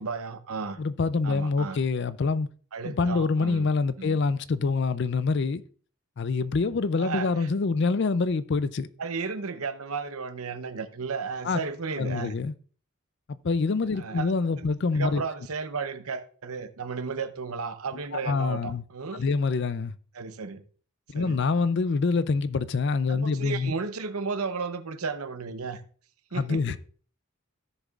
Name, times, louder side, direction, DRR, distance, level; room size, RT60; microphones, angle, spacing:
voice 1, 0.0-0.8 1.2-1.8 2.7-3.7 4.0-4.2 7.0-7.3 9.0-12.3 14.0-14.3 14.6-14.7 15.0-19.2 20.1-20.6 21.1-21.4 23.1-25.8 26.3-26.6, right 4 dB, 90° right, 0.8 m, -34 dB
voice 2, 0.8-2.5 2.8-5.6 6.2-8.9 11.4-11.6 12.0-12.5 13.4-15.2 18.2-18.8 19.1-19.9 21.1-23.7 26.3-26.8, left 4 dB, 55° left, 0.4 m, -26 dB
15.0 x 6.7 x 2.4 m
head